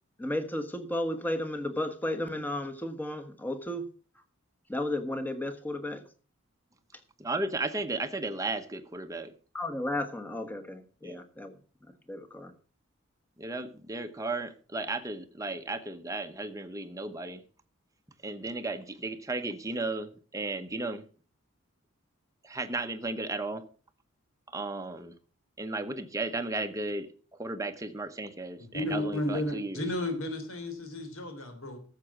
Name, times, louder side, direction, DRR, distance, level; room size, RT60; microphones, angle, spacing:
voice 1, 0.2-3.8 4.7-6.0 9.5-11.6 12.1-12.5, left 1 dB, 10° left, 6 dB, 1.2 m, -33 dB
voice 2, 7.2-9.3 11.0-11.2 13.4-17.4 18.2-21.0 22.4-23.6 24.5-25.1 25.6-27.1 27.4-29.8, right 2 dB, 15° right, 7 dB, 0.9 m, -34 dB
voice 3, 28.6-31.8, left 1 dB, 75° left, 6 dB, 3.4 m, -33 dB
13.0 x 7.6 x 5.9 m, 0.39 s
head